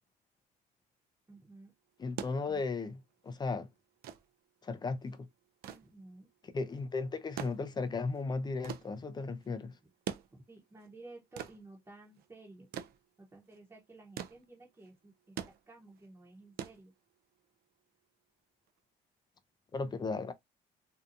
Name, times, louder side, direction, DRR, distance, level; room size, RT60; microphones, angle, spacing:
voice 1, 1.3-1.7 5.7-6.3 10.3-12.7 13.2-16.9, right 2 dB, 15° right, 0.9 m, -54 dB
sound 1, 1.9-17.4 18.7-18.8, right 10 dB, 65° right, 0.4 m, -46 dB
voice 2, 2.0-3.7 4.6-5.3 6.5-9.7 19.7-20.3, left 4 dB, 25° left, 0.4 m, -36 dB
2.7 x 2.3 x 2.5 m
cardioid pair, 110°, 17 cm